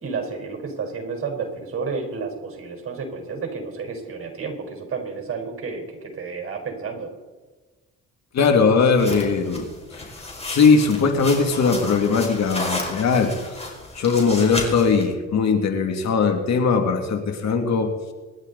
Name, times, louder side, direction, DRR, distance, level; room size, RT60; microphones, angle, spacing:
voice 1, 0.0-7.1, right 5 dB, 45° right, 2 dB, 4.9 m, -31 dB
voice 2, 8.3-10.0 10.5-13.6 13.9-17.9, left 5 dB, 65° left, 4 dB, 2.6 m, -20 dB
sound 1, 9.0-15.0, left 2 dB, 20° left, 4.8 m, -33 dB
26.5 x 11.5 x 4.2 m, 1.3 s
cardioid pair, 90°, 30 cm